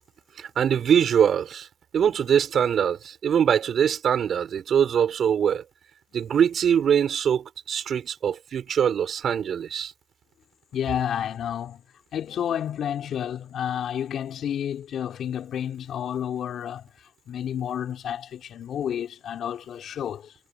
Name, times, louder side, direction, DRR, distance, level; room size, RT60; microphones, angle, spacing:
voice 1, 0.4-1.7 1.9-5.6 6.1-9.9, right 8 dB, 60° right, 4.7 m, -23 dB
voice 2, 10.7-11.8 12.1-20.3, left 9 dB, 65° left, 2.6 m, -30 dB
cardioid pair, 90°, 0 cm